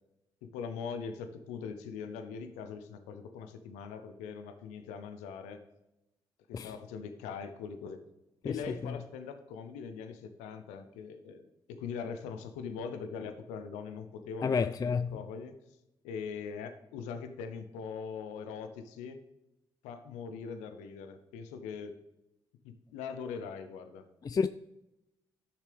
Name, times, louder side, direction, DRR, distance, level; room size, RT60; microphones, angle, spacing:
voice 1, 0.4-5.6 6.5-8.1 8.4-15.6 16.0-19.2 19.8-22.0 22.6-24.1, left 6 dB, 80° left, 0.7 m, -41 dB
voice 2, 14.4-15.1 24.2-24.5, left 5 dB, 30° left, 0.3 m, -29 dB
11.5 x 6.8 x 3.4 m
hypercardioid pair, 40°, 12 cm